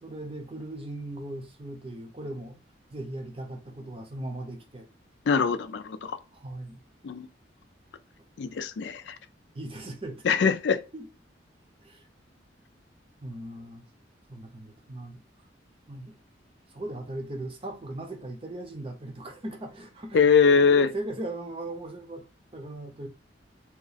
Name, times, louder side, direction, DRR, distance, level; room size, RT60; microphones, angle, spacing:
voice 1, 0.0-2.6 2.9-4.9 6.3-6.8 9.5-10.2 10.9-11.0 11.8-12.1 13.2-13.8 14.3-15.2 15.9-16.1 16.7-22.2 22.5-23.1, right 1 dB, 30° right, 0.7 m, -38 dB
voice 2, 5.3-6.2 7.0-7.3 8.4-9.2 10.2-10.8 20.1-20.9, left 5 dB, 70° left, 0.4 m, -22 dB
2.9 x 2.4 x 4.0 m
head